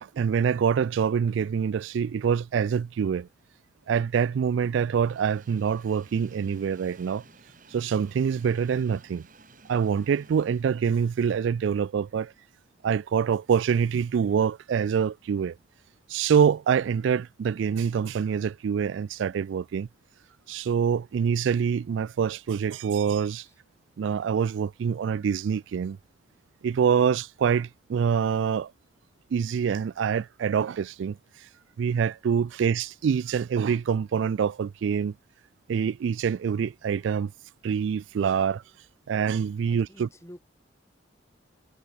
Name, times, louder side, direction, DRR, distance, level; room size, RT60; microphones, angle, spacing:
voice 1, 0.0-3.3 3.9-7.2 7.7-9.2 9.7-12.3 12.8-15.6 16.1-19.9 20.5-23.5 24.0-26.0 26.6-28.7 29.3-31.2 31.8-35.1 35.7-37.3 37.6-38.6 39.1-40.1, right 7 dB, 80° right, 0.3 m, -25 dB
Train, 3.3-13.1 13.5-13.6 14.7-14.8, right 3 dB, 45° right, 3.1 m, -56 dB
voice 2, 39.7-40.4, equal, 15° left, 2.1 m, -48 dB
head